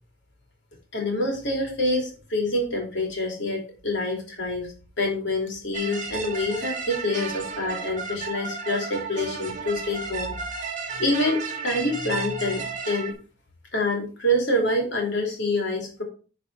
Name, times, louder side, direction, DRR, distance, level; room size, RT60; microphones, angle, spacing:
voice 1, 0.9-10.4 10.9-13.1 13.7-16.0, left 1 dB, 55° left, 2 dB, 3.0 m, -26 dB
sound 1, 5.7-13.1, right 5 dB, 40° right, 1.9 m, -33 dB
9.4 x 4.6 x 4.6 m, 0.36 s
head